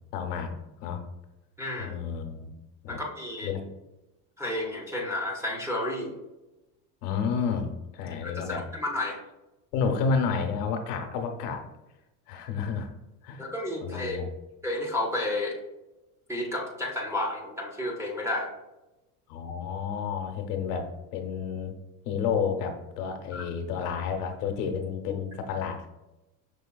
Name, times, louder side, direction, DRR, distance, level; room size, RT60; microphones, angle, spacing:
voice 1, 0.1-0.5 0.8-1.0 1.8-2.5 2.8-3.0 3.4-3.6 7.0-8.7 9.7-11.6 12.3-12.9 13.2-13.5 13.8-14.3 19.3-21.8 22.0-25.9, left 6 dB, 85° left, 5 dB, 0.9 m, -30 dB
voice 2, 1.6-2.0 2.9-3.6 4.4-6.1 8.2-9.2 13.4-14.2 14.6-15.6 16.3-18.5 23.3-23.5, left 1 dB, 5° right, -3 dB, 0.4 m, -31 dB
5.6 x 3.2 x 2.2 m, 0.99 s
supercardioid pair, 125°, 45 cm